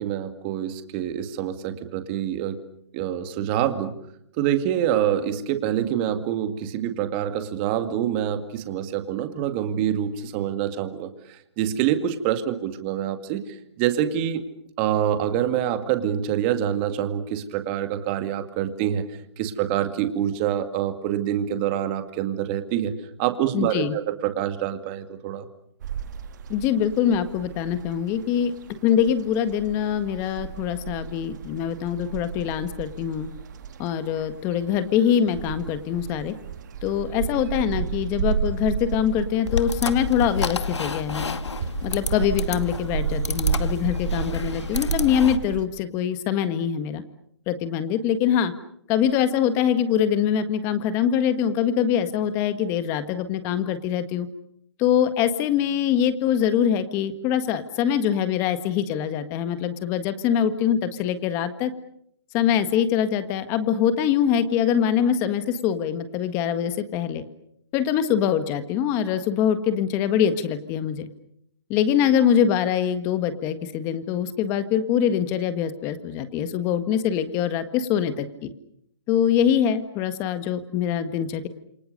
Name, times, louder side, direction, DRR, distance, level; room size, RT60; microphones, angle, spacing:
voice 1, 0.0-2.6 2.9-3.9 4.4-11.1 11.6-13.4 13.8-14.5 14.8-19.1 19.4-25.4, right 10 dB, 25° right, 8 dB, 2.1 m, -26 dB
voice 2, 23.5-23.9 26.5-28.5 28.8-33.3 33.8-36.3 36.8-41.4 41.8-47.0 47.5-48.5 48.9-54.3 54.8-61.7 62.3-67.2 67.7-71.1 71.7-78.5 79.1-81.5, left 9 dB, 20° left, 11 dB, 1.6 m, -23 dB
sound 1, 25.8-45.6, right 7 dB, 40° right, 1.8 m, -32 dB
sound 2, 39.5-45.4, left 5 dB, 80° left, 2.2 m, -30 dB
29.5 x 28.0 x 6.7 m, 0.72 s
hypercardioid pair, 160°, 14 cm